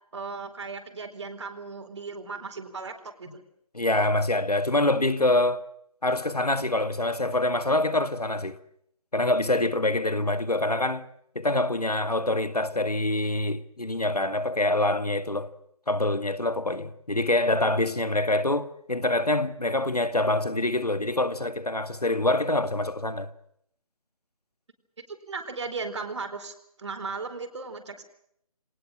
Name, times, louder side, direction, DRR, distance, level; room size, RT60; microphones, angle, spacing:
voice 1, 0.1-3.4 25.1-28.0, right 4 dB, 50° right, 4.3 m, -36 dB
voice 2, 3.7-5.6 6.0-8.6 9.1-11.1 11.4-15.5 15.9-23.3, left 2 dB, 85° left, 1.9 m, -25 dB
26.0 x 19.0 x 7.5 m
figure-of-eight pair, 155°, 19 cm